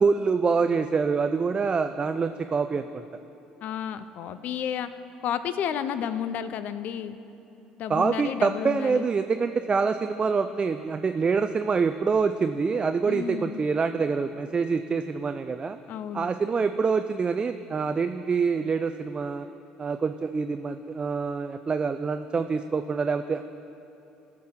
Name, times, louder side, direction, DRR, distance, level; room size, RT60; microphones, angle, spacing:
voice 1, 0.0-3.0 7.9-15.8 16.1-19.5 19.8-23.4, right 5 dB, 30° right, 8 dB, 0.4 m, -26 dB
voice 2, 3.6-4.9 5.2-7.2 7.8-9.1 13.1-13.7 15.9-16.3, left 9 dB, 60° left, 12 dB, 0.5 m, -31 dB
15.5 x 6.1 x 3.7 m, 3.0 s
hypercardioid pair, 65°, 3 cm